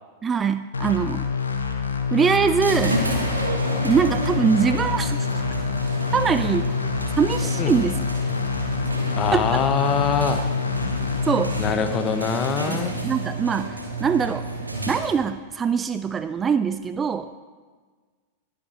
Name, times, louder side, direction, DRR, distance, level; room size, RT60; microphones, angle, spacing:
voice 1, 0.2-1.3 2.1-3.0 3.8-5.3 6.1-6.7 7.2-8.1 9.3-9.6 11.3-11.6 12.7-14.5 14.9-17.3, right 6 dB, 20° right, 11 dB, 0.3 m, -23 dB
sound 1, 0.7-11.7, left 6 dB, 75° left, 1.0 m, -27 dB
sound 2, 2.6-15.4, right 2 dB, 80° right, 1.6 m, -30 dB
voice 2, 9.2-10.4 11.6-13.0, left 6 dB, 30° left, 8 dB, 0.9 m, -23 dB
20.0 x 8.1 x 2.9 m, 1.5 s
figure-of-eight pair, 90°, 0 cm